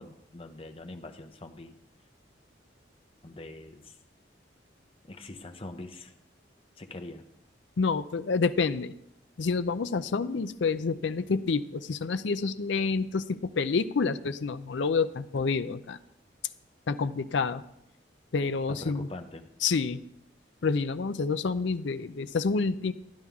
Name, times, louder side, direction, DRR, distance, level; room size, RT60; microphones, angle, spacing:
voice 1, 0.0-1.8 3.2-4.0 5.1-6.1 6.8-7.3 18.7-19.5, left 2 dB, 30° left, 5 dB, 0.8 m, -43 dB
voice 2, 7.8-8.9 9.4-16.0 16.9-17.6 18.3-19.1 19.6-20.0 20.6-22.9, left 4 dB, 70° left, 12 dB, 0.5 m, -28 dB
11.5 x 11.0 x 3.6 m, 0.82 s
head